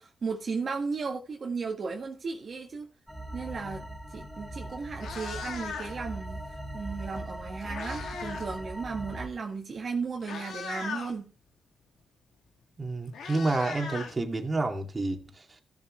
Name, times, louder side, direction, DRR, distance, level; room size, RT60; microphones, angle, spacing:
voice 1, 0.0-2.9 3.3-3.8 4.1-6.4 6.7-11.3, right 4 dB, 55° right, 1.7 m, -35 dB
sound 1, 3.1-9.3, right 1 dB, 5° right, 2.7 m, -39 dB
Meow, 4.3-4.5 4.8-6.1 7.2-8.5 8.8-9.1 9.8-9.9 10.2-11.1 12.4-12.5 12.8-14.7, left 5 dB, 85° left, 2.3 m, -39 dB
voice 2, 12.8-15.4, right 2 dB, 30° right, 2.3 m, -29 dB
15.0 x 7.2 x 3.2 m
cardioid pair, 70°, 0 cm